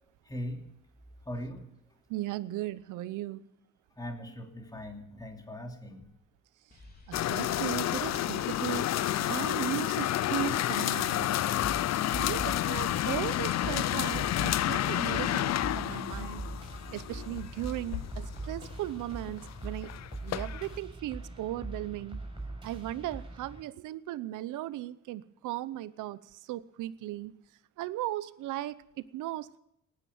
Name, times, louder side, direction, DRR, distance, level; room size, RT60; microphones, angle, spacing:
voice 1, 0.2-0.6 1.2-1.6 3.9-6.1, equal, 10° left, 2 dB, 3.0 m, -40 dB
voice 2, 2.1-3.4 7.1-11.3 12.2-16.4 16.9-19.9 20.2-22.2 22.6-27.3 27.8-28.8 29.1-29.6, right 15 dB, 90° right, 16 dB, 0.8 m, -37 dB
sound 1, 6.7-10.5, left 2 dB, 30° left, 3.4 m, -56 dB
sound 2, 7.1-20.7, left 13 dB, 60° left, 0.6 m, -30 dB
sound 3, 11.6-23.6, right 2 dB, 15° right, 6.9 m, -42 dB
19.0 x 9.9 x 7.1 m, 0.75 s
cardioid pair, 90°, 30 cm